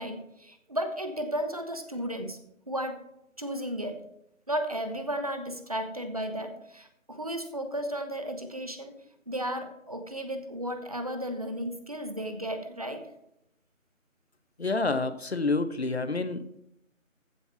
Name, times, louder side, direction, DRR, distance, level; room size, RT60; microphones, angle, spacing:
voice 1, 0.0-2.4 2.7-3.0 3.4-4.0 4.5-8.9 9.3-13.1, equal, 25° right, 8 dB, 1.0 m, -34 dB
voice 2, 14.6-16.6, left 3 dB, 50° left, 11 dB, 1.0 m, -28 dB
15.0 x 5.7 x 4.6 m, 0.78 s
figure-of-eight pair, 165°, 40 cm